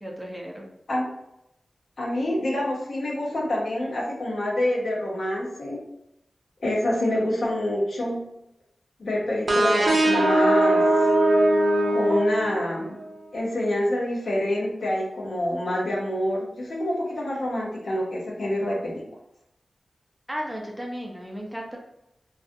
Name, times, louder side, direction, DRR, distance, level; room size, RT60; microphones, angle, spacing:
voice 1, 0.0-0.6 20.3-21.8, equal, 5° right, -1 dB, 0.5 m, -34 dB
voice 2, 2.0-5.8 6.6-8.3 9.0-10.8 11.9-12.9 13.3-19.0, left 1 dB, 70° left, -2 dB, 0.7 m, -26 dB
sound 1, 9.5-13.0, right 1 dB, 60° right, 0.6 m, -21 dB
2.3 x 2.3 x 2.6 m, 0.82 s
wide cardioid pair, 90°, 0 cm